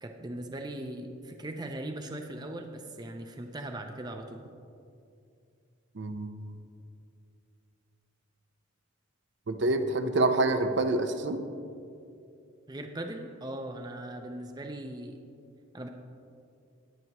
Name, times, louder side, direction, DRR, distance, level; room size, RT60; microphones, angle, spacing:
voice 1, 0.0-4.4 12.7-15.2 15.7-15.9, right 1 dB, 20° right, 4 dB, 0.5 m, -39 dB
voice 2, 6.0-6.3 9.5-11.4, right 2 dB, 55° right, 7 dB, 0.6 m, -27 dB
20.0 x 7.7 x 3.0 m, 2.5 s
head